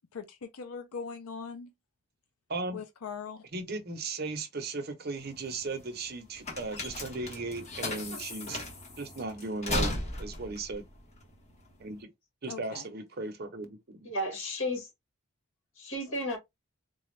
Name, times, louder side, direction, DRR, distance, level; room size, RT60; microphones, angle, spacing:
voice 1, 0.1-1.7 2.7-3.5 12.5-12.9, left 5 dB, 85° left, 0.5 m, -40 dB
voice 2, 3.5-8.6 9.0-9.9 10.2-10.8 11.8-12.1 12.4-14.1, right 3 dB, 45° right, 0.8 m, -36 dB
sound 1, 5.2-12.0, left 2 dB, 30° left, 1.1 m, -36 dB
voice 3, 14.0-14.9 15.8-16.4, left 1 dB, 65° left, 2.0 m, -33 dB
4.0 x 2.3 x 3.2 m
head